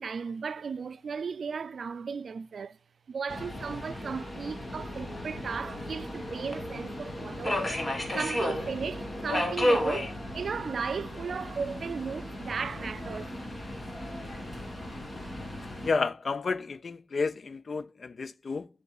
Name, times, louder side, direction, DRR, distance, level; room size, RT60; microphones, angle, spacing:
voice 1, 0.0-2.8 3.1-7.6 8.1-13.3, right 5 dB, 70° right, 0.4 m, -35 dB
Subway metro underground, 3.3-15.9, left 1 dB, 30° left, 2.1 m, -34 dB
voice 2, 15.8-18.7, left 4 dB, 55° left, 0.4 m, -31 dB
11.0 x 5.5 x 2.4 m
wide cardioid pair, 100°, 0 cm